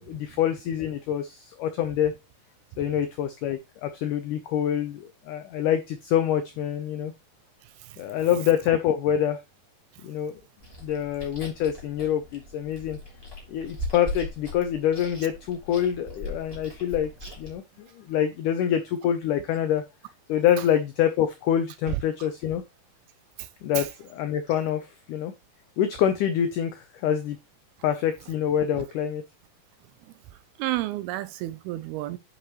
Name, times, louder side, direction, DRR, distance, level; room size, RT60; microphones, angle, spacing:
voice 1, 0.1-2.1 2.8-7.1 8.0-9.4 10.0-10.3 10.8-13.0 13.5-17.1 17.4-19.8 20.3-22.6 23.6-25.3 25.8-27.4 27.8-29.2, left 10 dB, 90° left, 1.8 m, -26 dB
Chewing mastication, 10.6-17.6, left 1 dB, 5° left, 2.4 m, -39 dB
voice 2, 30.6-32.2, right 16 dB, 80° right, 2.3 m, -30 dB
8.9 x 5.3 x 3.1 m
omnidirectional pair, 4.7 m